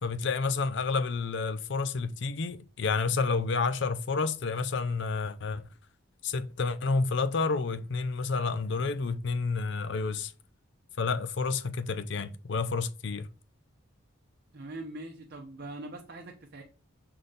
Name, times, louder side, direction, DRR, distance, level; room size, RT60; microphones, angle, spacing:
voice 1, 0.0-5.6 6.2-10.3 11.0-13.3, left 4 dB, 55° left, 0.5 m, -30 dB
voice 2, 14.5-16.6, right 2 dB, 50° right, 0.7 m, -42 dB
6.6 x 3.8 x 3.9 m
head